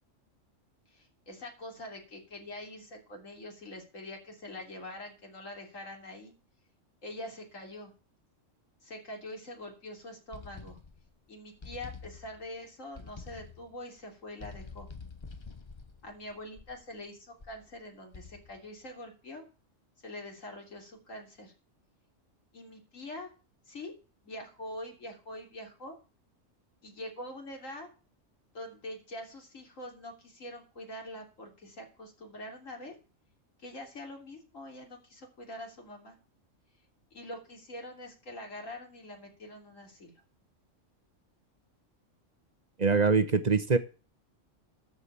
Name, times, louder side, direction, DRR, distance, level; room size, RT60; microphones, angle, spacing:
voice 1, 0.9-6.3 7.0-7.9 8.8-10.8 11.3-14.9 16.0-19.4 20.0-21.5 22.5-23.3 23.7-23.9 24.2-26.0 26.8-27.9 28.5-32.9 33.6-36.2 37.1-40.2, left 1 dB, 85° left, 1 dB, 3.6 m, -44 dB
sound 1, 10.3-11.2 11.6-12.6 12.9-13.7 14.4-16.9 17.4-17.7 18.1-18.7, left 4 dB, 25° left, 0.8 m, -47 dB
voice 2, 42.8-43.8, right 4 dB, 35° right, 10 dB, 1.0 m, -23 dB
13.0 x 5.0 x 8.2 m, 0.34 s
omnidirectional pair, 1.3 m